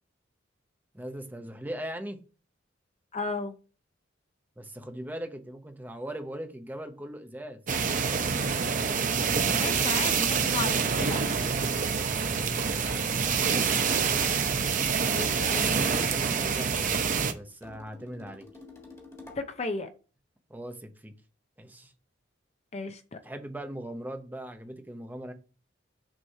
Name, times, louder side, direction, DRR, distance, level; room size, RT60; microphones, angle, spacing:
voice 1, 0.9-2.2 4.6-7.6 12.6-14.2 15.0-18.4 20.5-21.1 21.6-21.9 23.2-25.3, right 1 dB, 10° right, 0.7 m, -40 dB
voice 2, 3.1-3.5 9.5-11.5 15.1-15.7 19.3-19.9 22.7-23.2, left 3 dB, 35° left, 0.6 m, -34 dB
sound 1, 7.7-17.3, right 6 dB, 45° right, 0.6 m, -26 dB
sound 2, 14.4-15.6 17.6-19.5, left 3 dB, 15° left, 1.5 m, -48 dB
6.3 x 3.1 x 5.5 m
head